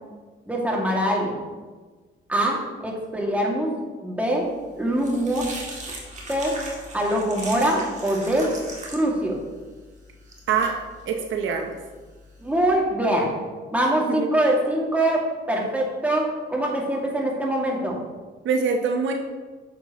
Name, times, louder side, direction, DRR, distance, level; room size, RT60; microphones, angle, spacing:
voice 1, 0.5-1.3 2.3-3.7 4.0-4.5 4.8-5.5 6.3-6.5 6.9-8.5 8.9-9.3 12.4-13.3 13.7-18.0, right 1 dB, 5° right, -2 dB, 2.2 m, -23 dB
sound 1, 4.5-12.7, right 2 dB, 35° right, 2.1 m, -39 dB
voice 2, 10.5-10.8 11.1-11.8 14.2-14.3 18.4-19.1, right 5 dB, 75° right, 4 dB, 0.8 m, -24 dB
9.7 x 7.1 x 3.0 m, 1.3 s
cardioid pair, 90°, 20 cm